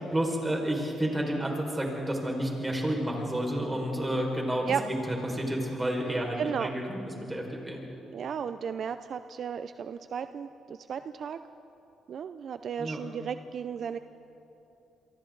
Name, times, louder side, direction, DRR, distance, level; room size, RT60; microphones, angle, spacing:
voice 1, 0.1-7.8 12.8-13.0, right 1 dB, 15° right, 0 dB, 5.1 m, -30 dB
voice 2, 6.4-6.7 8.1-11.4 12.1-14.0, right 7 dB, 60° right, 11 dB, 0.5 m, -34 dB
28.0 x 23.5 x 4.0 m, 3.0 s
cardioid pair, 90°, 0 cm